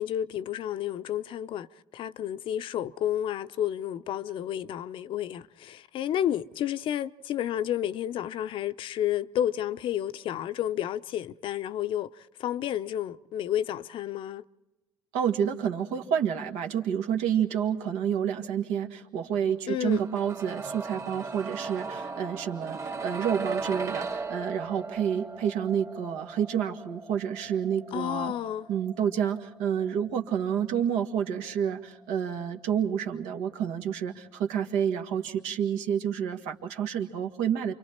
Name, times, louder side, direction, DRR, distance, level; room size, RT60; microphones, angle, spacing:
voice 1, 0.0-1.7 1.9-12.1 12.4-14.4 19.7-20.0 27.9-28.7, left 11 dB, 60° left, 0.7 m, -31 dB
voice 2, 15.1-28.3 28.7-37.7, right 8 dB, 75° right, 1.8 m, -29 dB
sound 1, 19.9-31.7 32.0-32.1, right 4 dB, 30° right, 2.0 m, -38 dB
29.0 x 25.0 x 4.4 m
hypercardioid pair, 60°, 10 cm